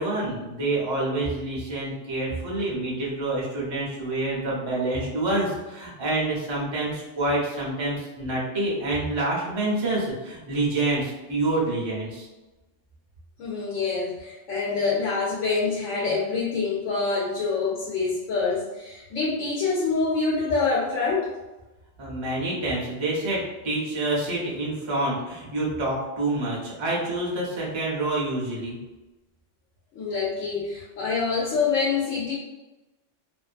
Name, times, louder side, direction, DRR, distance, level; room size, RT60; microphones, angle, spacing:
voice 1, 0.0-12.3 22.0-28.8, right 2 dB, 30° right, -5 dB, 0.5 m, -27 dB
voice 2, 13.4-21.3 29.9-32.3, left 4 dB, 85° left, -5 dB, 1.0 m, -26 dB
2.5 x 2.3 x 2.4 m, 1.1 s
omnidirectional pair, 1.3 m